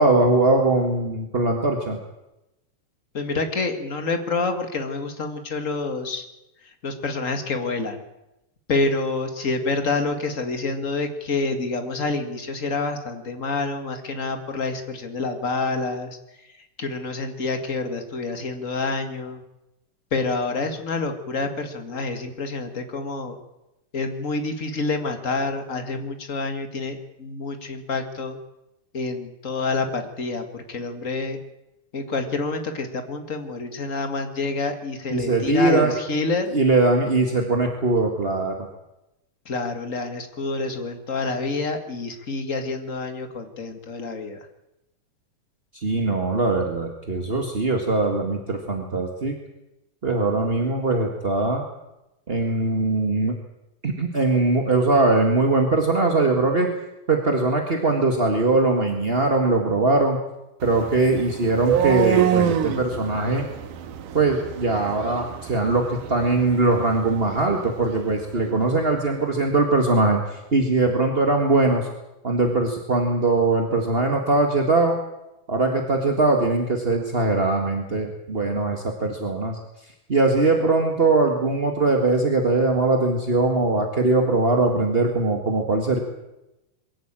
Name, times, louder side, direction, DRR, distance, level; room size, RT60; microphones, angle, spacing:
voice 1, 0.0-2.0 35.1-36.0 36.5-38.7 45.7-49.4 50.0-51.6 52.3-53.3 53.8-56.7 57.1-60.2 60.6-63.5 64.1-71.9 72.2-75.0 75.5-79.6 80.1-86.0, right 2 dB, 25° right, 2 dB, 1.3 m, -21 dB
voice 2, 3.1-6.3 6.6-8.0 8.7-19.4 20.1-23.4 23.9-28.4 28.9-31.4 31.9-36.5 39.4-44.4, left 3 dB, 30° left, 6 dB, 1.6 m, -28 dB
sound 1, 60.6-68.6, right 9 dB, 75° right, 2.8 m, -27 dB
23.0 x 15.0 x 9.0 m, 0.94 s
omnidirectional pair, 3.8 m